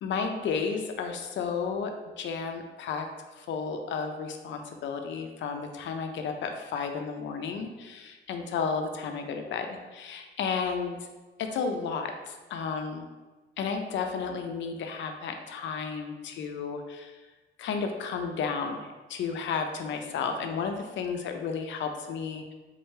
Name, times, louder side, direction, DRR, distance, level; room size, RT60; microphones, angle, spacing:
voice 1, 0.0-3.1 3.4-11.0 11.4-13.1 13.6-17.1 17.6-22.5, left 5 dB, 70° left, 5 dB, 0.5 m, -32 dB
3.9 x 3.1 x 3.2 m, 1.2 s
cardioid pair, 90°, 20 cm